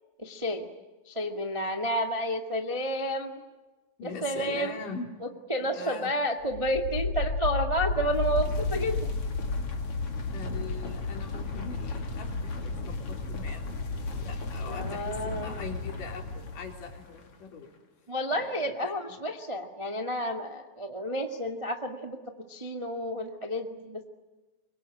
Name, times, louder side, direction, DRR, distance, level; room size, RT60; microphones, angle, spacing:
voice 1, 0.2-0.7 1.0-3.4 4.0-4.8 5.2-9.1 14.7-15.5 18.1-22.2 22.5-24.1, equal, 15° right, 4 dB, 1.0 m, -31 dB
voice 2, 4.0-5.1 5.6-6.1 10.3-13.6 14.1-17.7 18.3-18.9, left 5 dB, 65° left, 3 dB, 5.0 m, -42 dB
sound 1, 6.4-17.2, left 3 dB, 45° left, 3.3 m, -33 dB
24.0 x 24.0 x 9.9 m, 1.2 s
omnidirectional pair, 4.1 m